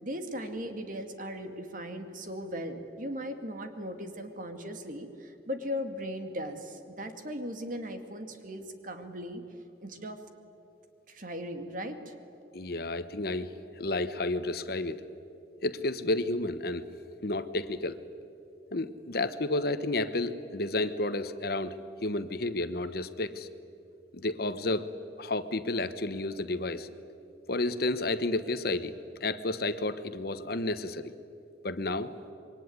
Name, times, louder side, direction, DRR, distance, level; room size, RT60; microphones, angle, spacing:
voice 1, 0.0-9.4 9.8-10.2 11.1-12.1, equal, 50° right, 6 dB, 2.3 m, -38 dB
voice 2, 12.5-13.5 13.8-15.0 15.6-16.9 17.2-18.0 18.7-23.5 24.1-24.9 25.2-26.9 27.5-28.9 29.2-31.1 31.6-32.1, left 2 dB, 60° left, 12 dB, 1.1 m, -31 dB
26.5 x 23.0 x 9.6 m, 2.7 s
head